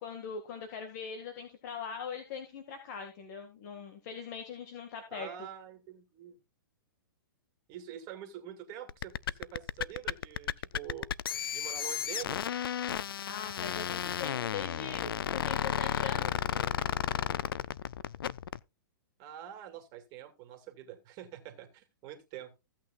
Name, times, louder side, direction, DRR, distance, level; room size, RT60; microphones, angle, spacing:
voice 1, 0.0-5.3 13.3-16.3, left 6 dB, 50° left, 6 dB, 1.8 m, -41 dB
voice 2, 5.1-6.4 7.7-11.1 11.5-12.5 19.2-22.5, right 11 dB, 35° right, 6 dB, 2.1 m, -45 dB
sound 1, 8.9-18.6, left 9 dB, 80° left, 0.4 m, -33 dB
15.5 x 8.7 x 2.4 m, 0.26 s
hypercardioid pair, 135°, 12 cm